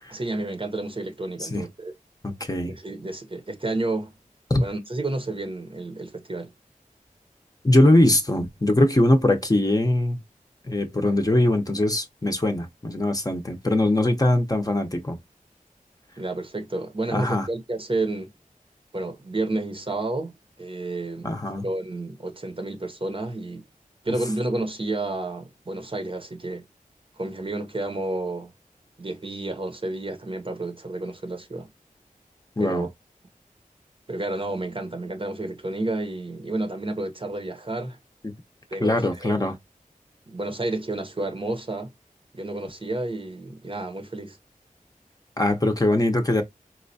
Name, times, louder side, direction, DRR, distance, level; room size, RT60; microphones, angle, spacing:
voice 1, 0.1-1.9 2.6-4.1 4.6-6.5 16.2-18.3 18.9-21.3 21.6-23.6 24.0-26.7 27.2-28.5 29.0-31.7 32.6-32.9 34.1-38.0 38.7-39.6 40.3-41.9 42.3-44.4, right 2 dB, 40° right, 0.8 m, -30 dB
voice 2, 2.2-2.7 4.5-4.6 7.6-10.2 10.6-15.2 17.1-17.5 21.2-21.6 32.6-32.9 38.8-39.5 45.4-46.4, left 1 dB, 25° left, 0.7 m, -21 dB
4.2 x 2.2 x 2.6 m
wide cardioid pair, 60°, 14 cm